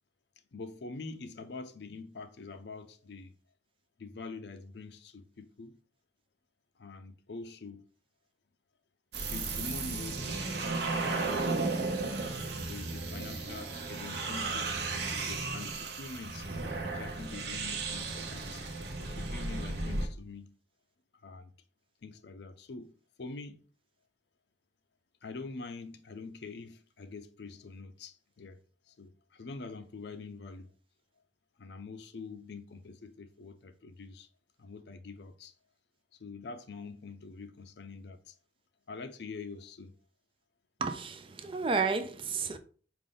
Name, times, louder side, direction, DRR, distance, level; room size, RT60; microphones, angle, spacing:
voice 1, 0.5-3.3 4.0-5.8 6.8-7.8 9.3-12.2 12.7-16.5 16.9-18.6 19.0-20.5 21.2-21.5 22.0-22.9 23.2-23.6 25.2-28.6 28.9-30.7 31.6-34.3 34.6-35.5 36.1-38.4 38.9-39.9, left 4 dB, 65° left, 0.5 m, -45 dB
sound 1, 9.1-20.1, right 3 dB, 70° right, 0.8 m, -34 dB
voice 2, 40.8-42.6, right 4 dB, 30° right, 0.3 m, -32 dB
5.1 x 2.6 x 3.7 m
head